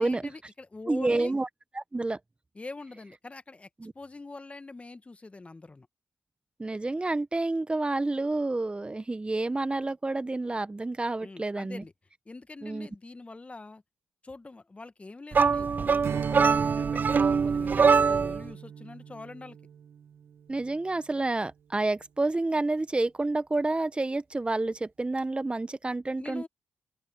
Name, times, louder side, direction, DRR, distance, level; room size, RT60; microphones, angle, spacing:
voice 1, 0.0-1.4 2.5-3.7 3.9-5.9 11.2-11.9 12.2-13.8 14.2-19.6 26.2-26.5, left 3 dB, 30° left, 1.5 m, -44 dB
voice 2, 0.9-1.5 1.7-2.2 3.8-3.9 6.6-11.8 12.6-12.9 20.5-26.5, right 2 dB, 25° right, 1.2 m, -29 dB
sound 1, 15.3-18.5, right 5 dB, 45° right, 0.4 m, -23 dB
Strum, 16.0-20.8, right 8 dB, 70° right, 1.8 m, -38 dB
open air
supercardioid pair, 45°, 4 cm